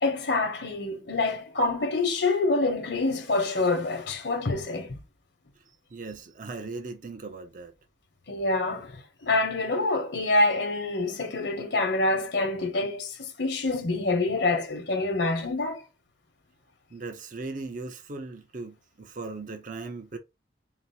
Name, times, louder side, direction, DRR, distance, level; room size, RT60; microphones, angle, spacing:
voice 1, 0.0-5.0 8.3-15.8, left 2 dB, 70° left, 1.0 m, -26 dB
voice 2, 5.9-7.7 16.9-20.2, right 3 dB, 45° right, 0.6 m, -38 dB
4.1 x 2.0 x 4.1 m
head